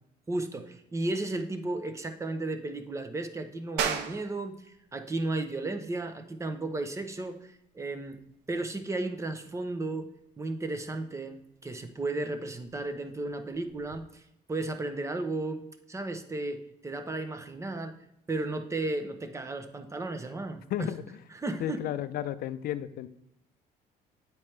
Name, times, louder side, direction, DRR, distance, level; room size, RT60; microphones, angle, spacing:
voice 1, 0.3-8.2 8.5-10.1 10.4-14.2 14.5-17.9 18.3-20.9 21.3-21.8, right 2 dB, 15° right, 7 dB, 0.7 m, -34 dB
sound 1, 3.8-14.0, right 7 dB, 80° right, 0.7 m, -41 dB
voice 2, 20.7-21.2 21.6-23.1, left 12 dB, 65° left, 12 dB, 0.5 m, -33 dB
8.5 x 4.5 x 3.2 m, 0.79 s
cardioid pair, 110°, 17 cm